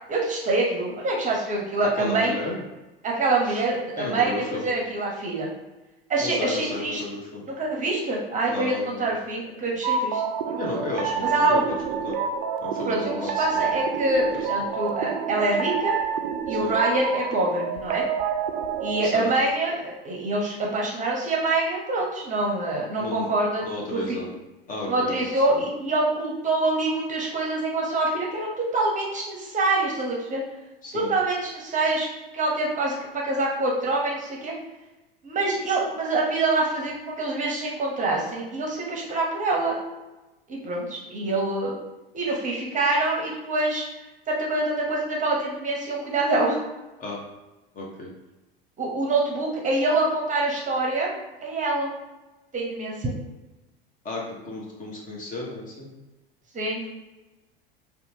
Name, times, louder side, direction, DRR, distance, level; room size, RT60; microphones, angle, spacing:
voice 1, 0.1-2.3 3.0-5.5 6.1-7.0 7.6-10.6 11.2-11.6 12.8-16.0 16.5-18.0 18.8-24.2 24.9-30.4 30.9-32.1 32.3-34.5 35.2-39.8 40.5-41.8 42.1-43.8 44.3-46.6 48.8-51.1 51.4-51.9 52.5-53.1 56.5-56.9, right 2 dB, 25° right, -2 dB, 0.8 m, -25 dB
voice 2, 1.8-2.6 3.4-3.6 3.9-4.7 6.2-7.5 8.5-9.1 10.6-11.6 12.0-12.2 12.6-13.7 16.5-16.7 19.0-19.3 23.0-23.3 23.6-24.3 24.7-25.6 30.8-31.1 47.0-47.2 47.7-48.1 54.0-55.9, left 2 dB, 30° left, -2 dB, 0.9 m, -33 dB
sound 1, 9.8-19.1, right 6 dB, 65° right, 0.4 m, -28 dB
2.8 x 2.3 x 2.8 m, 1.1 s
hypercardioid pair, 80°, 29 cm